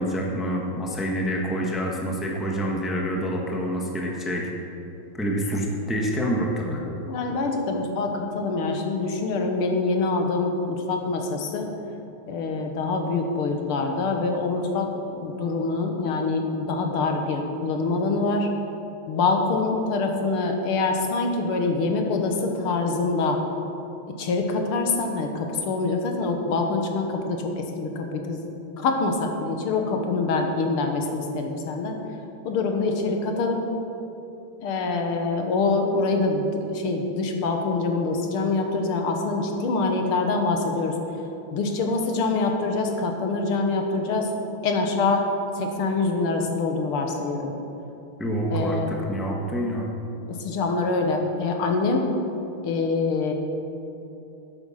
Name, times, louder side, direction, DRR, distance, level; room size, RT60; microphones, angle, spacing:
voice 1, 0.0-4.5 5.1-6.8 48.2-49.9, equal, ahead, -1 dB, 1.0 m, -27 dB
voice 2, 7.0-11.7 12.3-18.5 19.1-23.4 24.2-28.4 28.8-32.0 32.4-33.7 34.6-41.0 41.5-44.3 44.6-45.3 45.6-47.5 48.5-48.9 50.3-52.1 52.6-53.3, left 3 dB, 90° left, 3 dB, 2.1 m, -25 dB
12.5 x 9.0 x 5.8 m, 2.9 s
omnidirectional pair, 2.3 m